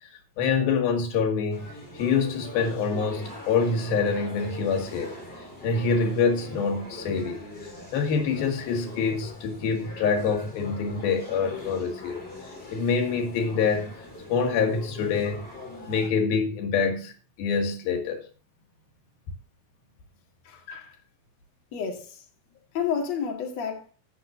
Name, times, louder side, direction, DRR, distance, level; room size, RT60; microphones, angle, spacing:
voice 1, 0.0-13.9 14.3-15.4 15.9-18.2, left 5 dB, 90° left, 3.5 m, -26 dB
sound 1, 1.5-16.1, left 2 dB, 15° left, 2.9 m, -42 dB
voice 2, 20.4-21.0 21.7-22.2 22.7-23.9, left 7 dB, 50° left, 2.9 m, -31 dB
17.5 x 6.5 x 2.7 m
omnidirectional pair, 4.2 m